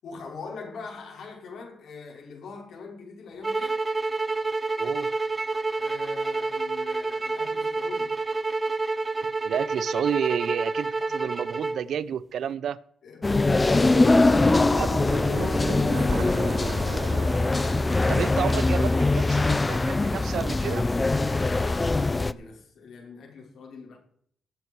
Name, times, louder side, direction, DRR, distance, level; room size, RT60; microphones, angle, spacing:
voice 1, 0.0-3.8 5.7-8.2 13.0-15.7 16.0-16.7 21.1-24.0, left 5 dB, 70° left, 5.6 m, -42 dB
sound 1, 3.4-11.8, right 3 dB, 25° right, 0.7 m, -28 dB
voice 2, 4.8-5.1 9.4-12.8 14.8-14.9 17.0-17.1 18.1-20.8, right 8 dB, 70° right, 0.6 m, -30 dB
sound 2, 13.2-22.3, left 2 dB, 20° left, 0.5 m, -22 dB
sound 3, 13.5-20.0, right 9 dB, 85° right, 1.0 m, -39 dB
19.5 x 8.2 x 4.7 m
cardioid pair, 110°, 0 cm